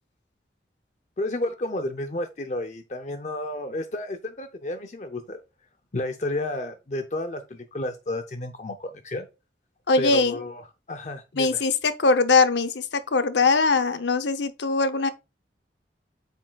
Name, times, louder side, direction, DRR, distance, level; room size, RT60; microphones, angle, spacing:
voice 1, 1.2-5.4 5.9-9.3 10.0-11.6, left 1 dB, 40° left, 0.6 m, -31 dB
voice 2, 9.9-10.4 11.4-12.9 13.1-15.1, left 4 dB, 80° left, 0.7 m, -21 dB
8.3 x 6.3 x 2.3 m
head